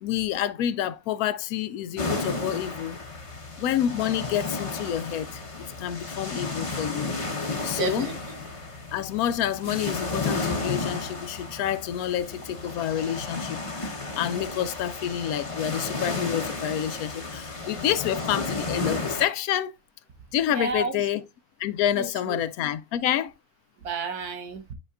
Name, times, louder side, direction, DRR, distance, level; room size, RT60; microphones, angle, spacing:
voice 1, 0.0-3.0 3.6-7.1 7.6-8.1 8.9-19.7 20.3-21.2 21.6-23.3, left 10 dB, 75° left, 1.0 m, -28 dB
sound 1, 2.0-19.2, left 3 dB, 25° left, 1.0 m, -33 dB
voice 2, 7.7-8.4 20.5-21.0 21.9-22.4 23.8-24.7, right 4 dB, 85° right, 1.7 m, -32 dB
8.1 x 5.1 x 2.4 m
omnidirectional pair, 1.6 m